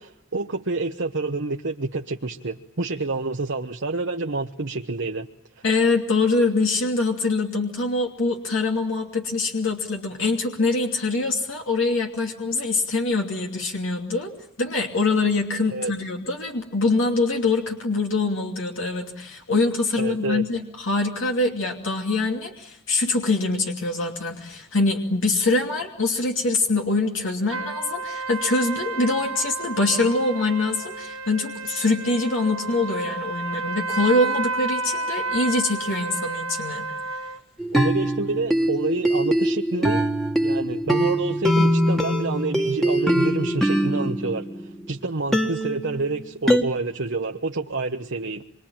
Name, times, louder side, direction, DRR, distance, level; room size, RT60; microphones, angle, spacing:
voice 1, 0.0-5.3 15.7-15.9 20.0-20.4 37.7-40.0 40.4-48.4, right 3 dB, 60° right, 3 dB, 1.2 m, -28 dB
voice 2, 5.6-14.3 14.6-36.9, left 3 dB, 65° left, 1 dB, 2.8 m, -24 dB
sound 1, 27.5-37.4, right 3 dB, 75° right, 1.5 m, -31 dB
sound 2, 37.6-44.9 45.3-46.6, equal, ahead, 1.9 m, -22 dB
26.0 x 24.5 x 8.9 m, 0.74 s
head